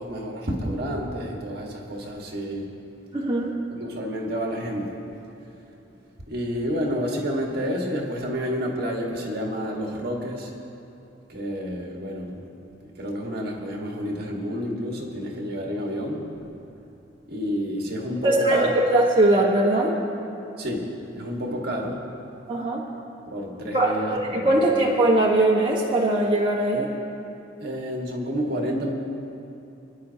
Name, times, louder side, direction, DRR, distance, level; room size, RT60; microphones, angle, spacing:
voice 1, 0.0-2.7 3.7-5.1 6.3-10.5 11.3-12.4 12.8-16.4 17.3-18.8 20.6-22.0 23.3-24.8 27.6-28.9, equal, 55° right, 0 dB, 1.7 m, -30 dB
voice 2, 3.1-3.6 18.2-20.0 22.5-22.8 23.7-26.9, right 1 dB, 25° right, -4 dB, 1.3 m, -21 dB
26.5 x 10.0 x 2.9 m, 2.8 s
head